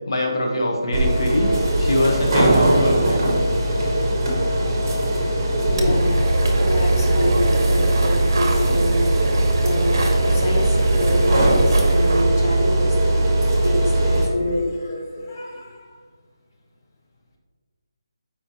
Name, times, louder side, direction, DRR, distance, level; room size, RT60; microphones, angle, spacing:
voice 1, 0.1-1.5 1.8-3.3, left 1 dB, 70° left, 0 dB, 1.1 m, -22 dB
sound 1, 0.9-14.3, right 1 dB, 35° right, 1.3 m, -19 dB
voice 2, 5.6-6.2 6.6-9.1 9.6-13.3 13.6-16.0, left 1 dB, 35° left, -3 dB, 1.2 m, -27 dB
sound 2, 5.7-12.3, right 2 dB, 55° right, 0.9 m, -26 dB
7.0 x 4.8 x 2.9 m, 1.5 s
figure-of-eight pair, 165°, 2 cm